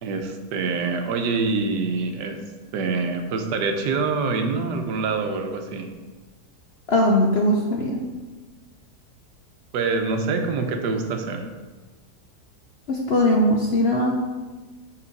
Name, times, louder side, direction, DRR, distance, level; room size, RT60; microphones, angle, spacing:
voice 1, 0.0-2.4 2.7-5.9 9.7-11.4, right 4 dB, 90° right, 5 dB, 1.4 m, -25 dB
voice 2, 6.9-8.0 12.9-14.1, left 1 dB, 60° left, 0 dB, 0.7 m, -20 dB
6.1 x 5.6 x 4.0 m, 1.3 s
omnidirectional pair, 1.8 m